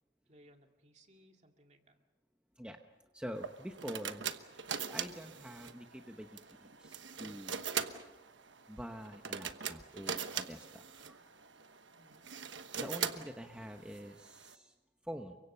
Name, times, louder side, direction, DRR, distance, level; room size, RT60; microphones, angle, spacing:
voice 1, 0.3-2.0 11.9-12.2, equal, 35° right, 3 dB, 2.3 m, -63 dB
voice 2, 3.1-4.4 4.9-7.6 8.7-11.3 12.8-14.7 15.0-15.4, equal, 5° right, 4 dB, 1.0 m, -46 dB
sound 1, 3.4-14.6, right 7 dB, 80° right, 1.2 m, -42 dB
30.0 x 24.0 x 5.7 m, 1.1 s
head